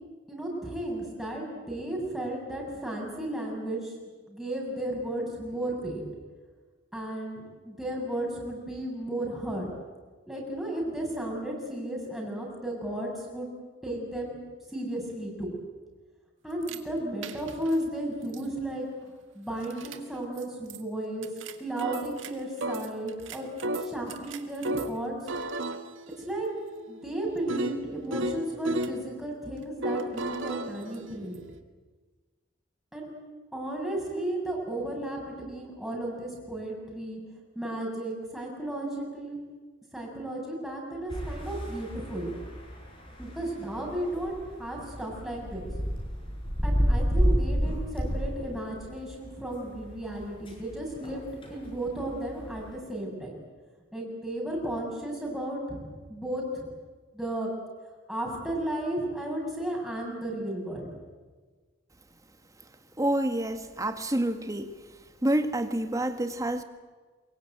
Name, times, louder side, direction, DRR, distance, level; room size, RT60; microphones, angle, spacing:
voice 1, 0.3-3.9 4.3-6.0 6.9-9.7 10.3-13.5 13.8-14.4 14.7-15.5 16.4-18.9 19.3-21.3 21.6-23.5 23.8-25.1 26.2-26.5 26.9-31.4 32.9-33.1 33.5-37.2 37.5-39.4 39.9-42.3 43.2-44.3 44.6-45.7 46.6-53.3 53.9-56.7 57.1-57.5 58.1-60.9, right 1 dB, ahead, -2 dB, 6.8 m, -34 dB
sound 1, 16.6-16.8 17.2-17.7 18.3-18.4 19.6-20.0 20.4-20.5 20.7-20.8 21.2-22.3 22.6-25.0 25.3-29.0 29.8-31.6, right 1 dB, 80° right, 1.8 m, -34 dB
sound 2, 41.1-52.7, equal, 25° left, 7.2 m, -31 dB
voice 2, 63.0-64.7 65.2-66.6, right 1 dB, 20° right, 8 dB, 1.7 m, -28 dB
23.5 x 22.5 x 9.2 m, 1.4 s
head